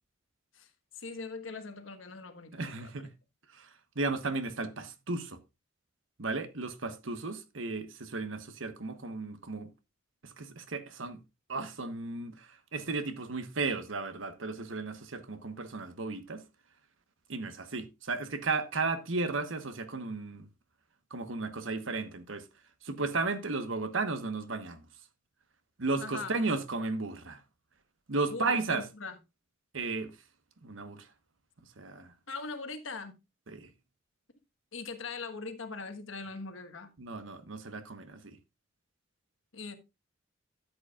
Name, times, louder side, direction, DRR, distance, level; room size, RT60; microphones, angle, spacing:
voice 1, 1.0-2.9 26.0-26.3 28.3-29.2 32.3-33.1 34.7-36.9 39.5-39.8, left 4 dB, 90° left, 1.4 m, -41 dB
voice 2, 2.5-3.1 3.5-5.4 6.2-9.7 10.2-11.2 11.5-16.4 17.3-20.5 21.1-22.4 22.8-24.8 25.8-27.4 28.1-28.9 29.7-30.1 30.6-31.1 31.8-32.1 33.5-33.7 37.0-38.4, right 3 dB, 85° right, 1.2 m, -34 dB
13.0 x 8.0 x 2.4 m
head